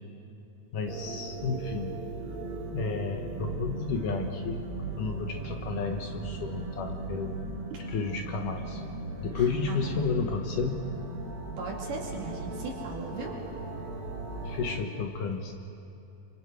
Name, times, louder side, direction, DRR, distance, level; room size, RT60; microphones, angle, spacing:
voice 1, 0.7-1.9 2.7-4.6 5.0-7.4 7.9-8.8 9.2-10.8 14.5-15.5, left 5 dB, 65° left, 4 dB, 2.4 m, -32 dB
sound 1, 0.9-14.8, right 2 dB, 85° right, 4.9 m, -37 dB
voice 2, 9.3-10.0 11.6-13.4, right 3 dB, 60° right, -1 dB, 4.1 m, -38 dB
27.5 x 25.5 x 4.7 m, 2.9 s
omnidirectional pair, 4.5 m